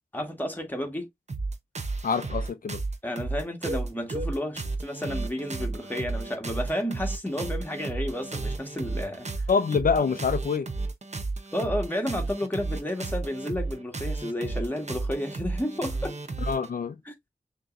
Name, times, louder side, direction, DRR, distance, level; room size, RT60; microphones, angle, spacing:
voice 1, 0.1-1.1 3.0-9.4 11.5-16.2 17.1-17.2, left 1 dB, 10° left, 1.6 m, -32 dB
sound 1, 1.3-16.7, right 3 dB, 50° right, 0.8 m, -33 dB
voice 2, 2.0-2.8 9.5-10.7 16.5-17.0, left 5 dB, 75° left, 0.5 m, -25 dB
6.4 x 3.1 x 2.5 m
wide cardioid pair, 70°, 15 cm